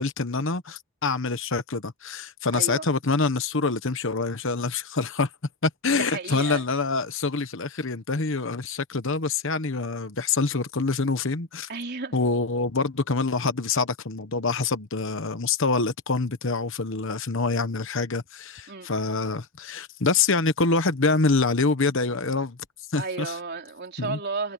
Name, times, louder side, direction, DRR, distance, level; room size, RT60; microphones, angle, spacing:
voice 1, 0.0-5.3 5.6-11.7 12.1-22.6 22.9-23.3 24.0-24.2, left 3 dB, 55° left, 1.2 m, -26 dB
voice 2, 2.5-2.9 5.9-6.6 11.7-12.2 18.7-18.9 23.0-24.5, right 4 dB, 45° right, 4.1 m, -33 dB
head